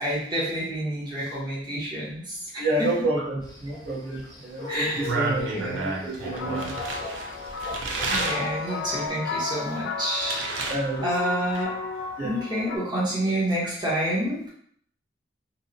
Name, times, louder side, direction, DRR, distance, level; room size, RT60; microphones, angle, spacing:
voice 1, 0.0-2.9 3.7-3.8 4.7-5.1 5.5-6.0 8.1-10.7 11.0-11.7 12.2-14.5, right 1 dB, 25° right, -7 dB, 0.8 m, -29 dB
voice 2, 2.6-6.7 10.7-11.0 12.2-12.3, right 2 dB, 55° right, -6 dB, 0.8 m, -29 dB
sound 1, 3.4-9.1, left 2 dB, 20° left, 0.7 m, -39 dB
sound 2, 4.8-8.5 9.0-10.8 11.1-11.6, right 3 dB, 80° right, 0.4 m, -31 dB
sound 3, 6.3-12.8, left 4 dB, 80° left, 0.4 m, -34 dB
2.7 x 2.0 x 2.6 m, 0.63 s
head